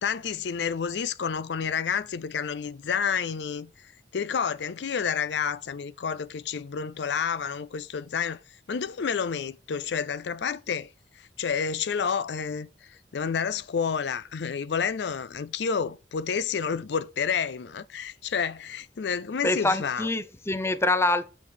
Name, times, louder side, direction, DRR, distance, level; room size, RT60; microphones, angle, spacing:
voice 1, 0.0-3.7 4.1-8.4 8.7-10.9 11.2-20.1, left 6 dB, 70° left, 0.4 m, -29 dB
voice 2, 19.4-21.3, left 2 dB, 15° left, 0.5 m, -25 dB
7.6 x 5.8 x 3.9 m
head